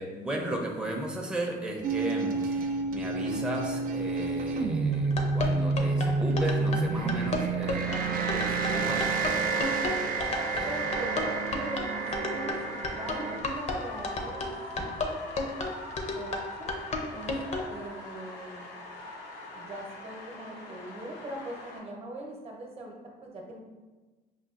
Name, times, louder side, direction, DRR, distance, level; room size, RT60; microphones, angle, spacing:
voice 1, 0.0-9.6 10.5-10.7, right 1 dB, 5° right, -1 dB, 0.6 m, -35 dB
sound 1, 1.8-13.4, right 4 dB, 55° right, 0.4 m, -29 dB
sound 2, 4.9-17.7, left 3 dB, 40° left, 0.6 m, -33 dB
sound 3, 7.9-21.8, left 2 dB, 85° left, 0.7 m, -43 dB
voice 2, 10.6-14.5 16.1-16.8 17.1-17.3 17.7-18.7 19.5-22.9 23.2-23.7, right 1 dB, 35° right, -1 dB, 0.9 m, -41 dB
5.6 x 2.3 x 2.5 m, 1.3 s
cardioid pair, 110°, 17 cm